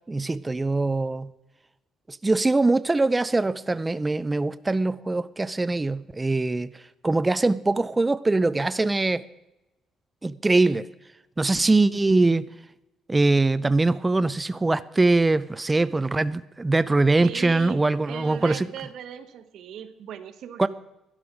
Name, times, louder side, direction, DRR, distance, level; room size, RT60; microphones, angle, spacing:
voice 1, 0.1-1.3 2.1-6.7 7.0-9.2 10.2-10.9 11.4-12.4 13.1-18.7 20.6-20.7, right 2 dB, 15° right, 15 dB, 0.3 m, -22 dB
voice 2, 17.2-20.7, right 9 dB, 65° right, 11 dB, 1.1 m, -38 dB
12.0 x 11.5 x 5.1 m, 0.95 s
cardioid pair, 140°, 0 cm